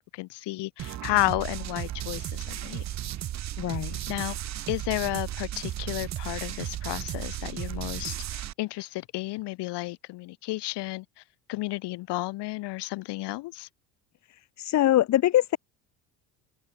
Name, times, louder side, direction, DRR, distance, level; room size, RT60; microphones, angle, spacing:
voice 1, 0.1-2.8 4.1-4.4 4.7-11.2 11.5-13.7, left 20 dB, 60° left, 0.9 m, -32 dB
sound 1, 0.8-8.5, right 12 dB, 40° right, 0.7 m, -34 dB
voice 2, 3.6-4.0 14.6-15.6, left 13 dB, 40° left, 0.6 m, -23 dB
open air
supercardioid pair, 85°, 45 cm